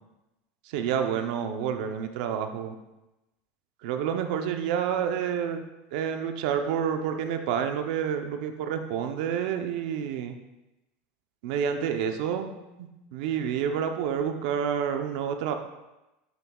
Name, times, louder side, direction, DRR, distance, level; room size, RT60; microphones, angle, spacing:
voice 1, 0.6-2.8 3.8-5.6 5.9-10.3 11.4-15.5, right 8 dB, 60° right, 6 dB, 0.8 m, -29 dB
10.5 x 6.7 x 2.4 m, 0.99 s
supercardioid pair, 175°, 5 cm